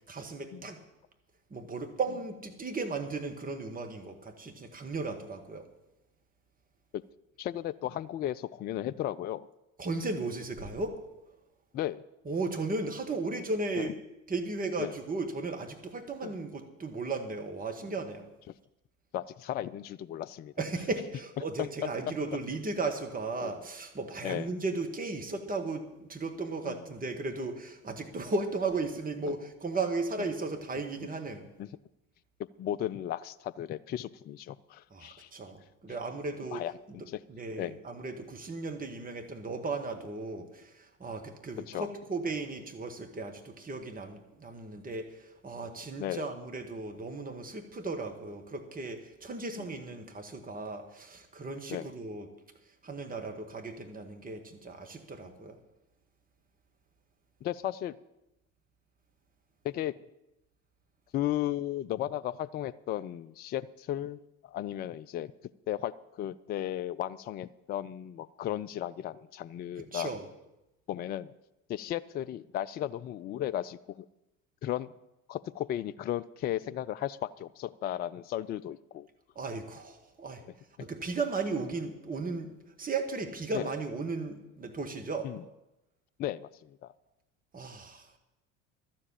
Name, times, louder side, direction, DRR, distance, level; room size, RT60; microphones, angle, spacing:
voice 1, 0.1-0.8 1.5-5.6 9.8-11.0 12.3-13.9 14.3-18.3 20.6-31.5 34.9-36.6 36.9-37.0 37.3-52.3 52.8-55.6 69.8-70.2 79.4-80.4 80.8-85.3 87.5-88.1, right 3 dB, 20° right, 4 dB, 1.9 m, -36 dB
voice 2, 7.4-9.5 11.7-12.0 13.8-13.9 14.8-15.0 16.2-16.3 19.1-20.5 21.8-21.9 23.4-23.6 24.2-24.5 26.7-26.8 29.3-29.4 30.2-30.3 31.6-31.7 32.6-35.3 36.5-37.2 37.6-37.8 41.7-41.9 46.0-46.3 49.6-49.7 51.7-51.9 57.4-58.0 59.6-59.9 61.1-65.3 65.7-70.1 70.9-71.3 71.7-74.1 74.6-74.9 75.3-79.1 80.4-80.5 83.5-83.7 85.2-85.4 86.2-86.9, left 12 dB, 25° left, 16 dB, 0.4 m, -35 dB
12.0 x 7.6 x 8.6 m, 0.93 s
figure-of-eight pair, 65°, 41 cm